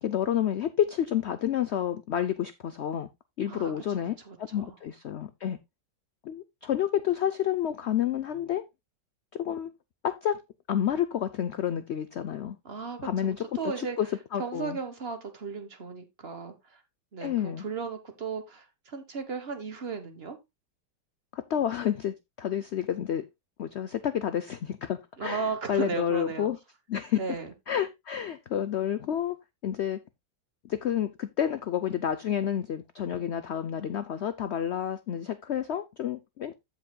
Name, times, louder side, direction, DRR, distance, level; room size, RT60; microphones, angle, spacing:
voice 1, 0.0-3.1 3.4-5.6 6.2-8.7 9.3-9.7 10.0-10.4 10.7-12.6 13.0-14.1 14.3-14.8 17.2-17.6 21.3-23.3 23.6-26.6 26.9-27.2 27.7-29.4 29.6-30.0 30.7-36.5, left 10 dB, 90° left, 0.5 m, -29 dB
voice 2, 3.5-4.7 12.6-14.0 14.4-16.8 17.1-20.4 25.2-26.5 27.2-27.5, right 5 dB, 40° right, 1.3 m, -36 dB
15.5 x 5.2 x 2.2 m
omnidirectional pair, 1.9 m